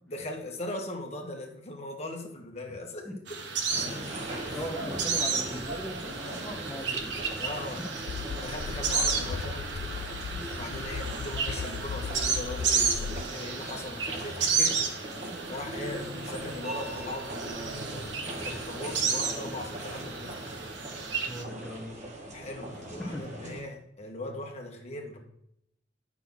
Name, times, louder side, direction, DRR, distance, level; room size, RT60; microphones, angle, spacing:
voice 1, 0.1-3.1 4.5-4.6 7.4-7.8 8.4-9.6 10.5-14.8 15.5-20.3 22.3-25.2, left 1 dB, 35° left, 1 dB, 1.5 m, -39 dB
sound 1, 3.3-21.4, right 5 dB, 75° right, 1.1 m, -33 dB
sound 2, 3.7-23.6, right 1 dB, 40° right, 1.6 m, -40 dB
voice 2, 4.5-7.1 21.3-22.1 22.7-23.2, equal, 5° left, -4 dB, 1.0 m, -39 dB
sound 3, 8.1-13.2, left 7 dB, 65° left, 0.3 m, -37 dB
8.9 x 6.1 x 4.0 m, 0.74 s
head